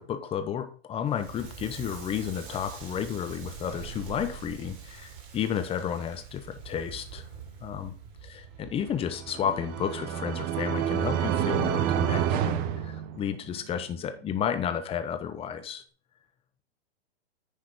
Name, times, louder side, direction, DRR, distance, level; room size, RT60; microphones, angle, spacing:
voice 1, 0.0-7.2 7.6-7.9 8.2-15.8, left 8 dB, 20° left, 9 dB, 0.9 m, -32 dB
Crackle, 1.1-10.0, right 7 dB, 50° right, 3.4 m, -45 dB
sound 1, 9.0-13.6, right 10 dB, 30° right, 0.8 m, -28 dB
9.8 x 3.9 x 5.0 m, 0.41 s
hypercardioid pair, 125°, 32 cm